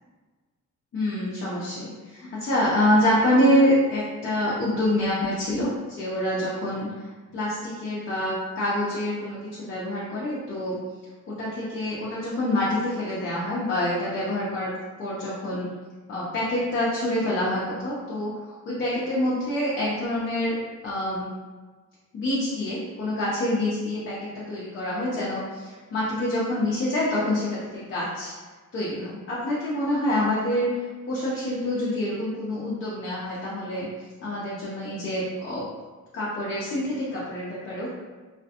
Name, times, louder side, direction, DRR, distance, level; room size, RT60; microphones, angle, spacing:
voice 1, 0.9-5.7 6.0-6.9 7.3-10.8 11.3-14.7 15.0-15.7 16.1-20.6 20.8-21.3 22.1-28.3 28.7-30.7 31.1-33.9 34.2-35.6 36.1-37.9, left 1 dB, 40° left, -7 dB, 0.5 m, -26 dB
2.4 x 2.2 x 2.7 m, 1.3 s
cardioid pair, 140°, 32 cm